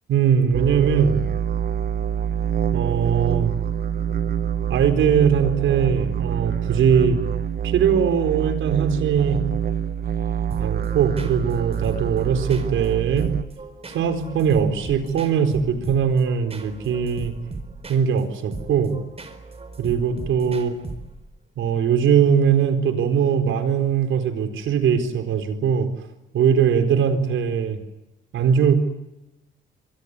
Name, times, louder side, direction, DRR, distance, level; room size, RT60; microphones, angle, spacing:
voice 1, 0.1-1.2 2.7-3.5 4.7-7.2 7.6-9.4 10.6-13.3 13.9-17.3 17.9-19.0 19.8-20.7 21.6-25.9 26.3-27.8 28.3-28.8, right 7 dB, 80° right, 8 dB, 4.3 m, -20 dB
sound 1, 0.5-13.4, right 8 dB, 50° right, 1.2 m, -26 dB
sound 2, 10.5-21.4, right 3 dB, 30° right, 4.5 m, -38 dB
25.0 x 23.5 x 9.8 m, 0.97 s
cardioid pair, 90°, 20 cm